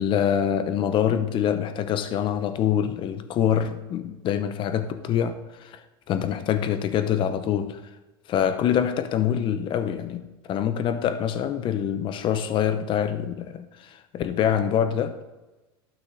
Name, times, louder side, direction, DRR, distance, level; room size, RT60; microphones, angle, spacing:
voice 1, 0.0-7.8 8.3-15.2, left 9 dB, 40° left, 0.8 m, -25 dB
12.0 x 6.1 x 4.0 m
supercardioid pair, 115°, 13 cm